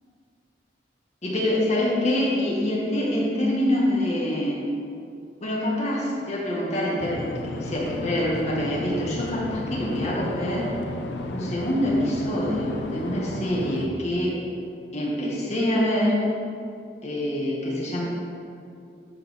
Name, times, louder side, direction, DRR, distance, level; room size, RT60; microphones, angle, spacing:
voice 1, 1.2-4.6 5.4-10.7 11.3-14.3 14.9-16.1 17.0-18.0, left 1 dB, 40° left, -5 dB, 1.8 m, -25 dB
sound 1, 7.0-13.9, left 2 dB, 75° left, 0.6 m, -33 dB
12.0 x 4.6 x 3.8 m, 2.4 s
head